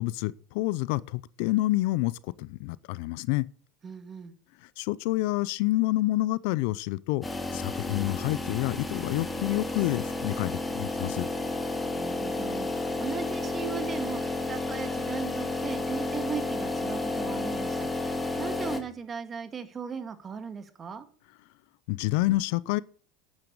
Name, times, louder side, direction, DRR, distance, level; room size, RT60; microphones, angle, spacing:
voice 1, 0.0-2.1 2.4-3.5 4.8-7.2 7.5-11.3 21.9-22.8, left 18 dB, 75° left, 0.5 m, -28 dB
voice 2, 3.8-4.3 11.9-21.0, right 6 dB, 30° right, 2.1 m, -38 dB
sound 1, 7.2-18.8, left 2 dB, 15° left, 2.3 m, -31 dB
10.5 x 9.8 x 6.5 m
supercardioid pair, 100°, 0 cm